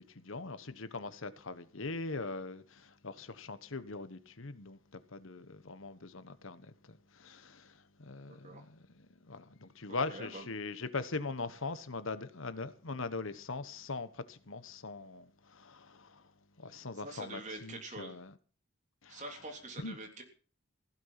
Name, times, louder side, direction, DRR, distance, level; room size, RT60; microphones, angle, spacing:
voice 1, 0.0-18.3 19.0-19.3 19.8-20.0, left 3 dB, 70° left, 1.2 m, -41 dB
voice 2, 8.3-8.7 10.1-10.4 17.0-18.2 19.1-20.2, right 2 dB, 35° right, 3.5 m, -45 dB
16.0 x 12.0 x 5.9 m
head